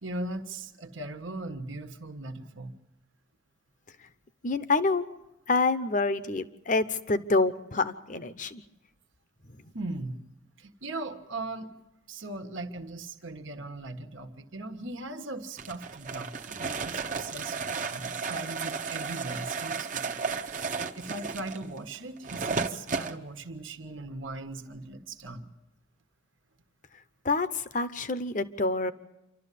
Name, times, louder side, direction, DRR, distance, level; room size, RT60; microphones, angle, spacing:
voice 1, 0.0-2.8 9.7-10.2 10.6-11.7 12.1-20.2 20.9-25.5, right 2 dB, 80° right, 7 dB, 1.4 m, -39 dB
voice 2, 4.4-5.0 5.5-8.6 27.2-28.9, left 3 dB, 40° left, 12 dB, 0.8 m, -27 dB
sound 1, 15.6-23.2, right 5 dB, 40° right, 0.9 m, -33 dB
27.5 x 12.5 x 8.5 m, 0.93 s
head